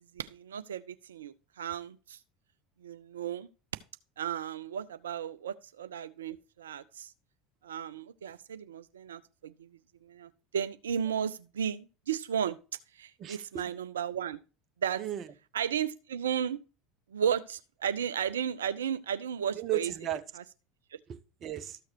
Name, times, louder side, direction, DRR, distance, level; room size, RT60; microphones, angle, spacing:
voice 1, 0.1-2.2 2.8-3.5 4.2-7.1 7.6-9.7 10.0-12.6 12.9-14.4 14.8-15.0 15.5-16.6 17.1-19.9 20.4-20.5, right 8 dB, 70° right, 0.4 m, -34 dB
voice 2, 13.2-13.6 15.0-15.3 19.5-20.2 21.1-21.8, right 11 dB, 40° right, 0.9 m, -35 dB
13.5 x 6.4 x 2.9 m
figure-of-eight pair, 70°, 0 cm